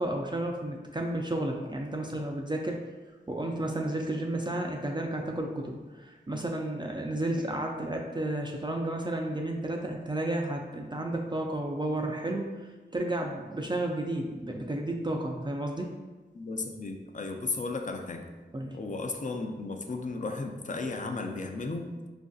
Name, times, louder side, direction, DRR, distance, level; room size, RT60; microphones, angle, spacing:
voice 1, 0.0-2.8 3.3-12.5 12.9-15.9 18.5-18.8, right 1 dB, 25° right, 0 dB, 0.3 m, -32 dB
voice 2, 16.3-18.2 18.7-21.9, left 3 dB, 40° left, 4 dB, 0.4 m, -34 dB
4.9 x 2.5 x 2.3 m, 1.3 s
wide cardioid pair, 65°, 20 cm